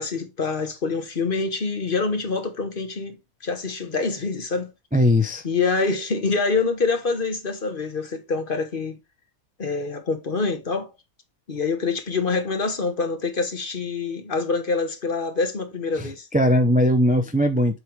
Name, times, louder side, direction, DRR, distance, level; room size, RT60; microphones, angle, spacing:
voice 1, 0.0-3.2 3.4-4.7 5.4-9.0 9.6-10.9 11.5-16.3, left 4 dB, 40° left, 1.2 m, -26 dB
voice 2, 4.9-5.4 16.0-17.8, left 1 dB, 10° right, 0.4 m, -20 dB
8.2 x 3.3 x 4.6 m
omnidirectional pair, 1.5 m